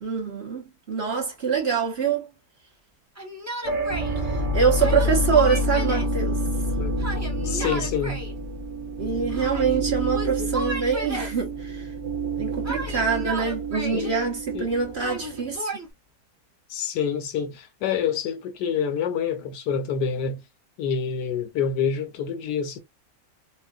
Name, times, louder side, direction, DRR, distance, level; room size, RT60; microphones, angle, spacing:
voice 1, 0.0-2.3 4.3-6.4 9.0-11.9 12.4-15.7, right 6 dB, 40° right, 1.2 m, -25 dB
Yell, 3.2-4.1 4.8-6.2 7.0-8.3 9.3-9.8 10.1-11.4 12.6-14.1 15.0-15.9, right 1 dB, 15° right, 0.6 m, -33 dB
sound 1, 3.6-15.6, equal, 55° right, 0.5 m, -28 dB
voice 2, 7.4-8.2 10.4-10.6 13.9-14.1 14.5-14.7 16.7-20.4 20.8-22.8, left 7 dB, 85° left, 1.4 m, -27 dB
3.8 x 2.4 x 2.3 m
omnidirectional pair, 1.8 m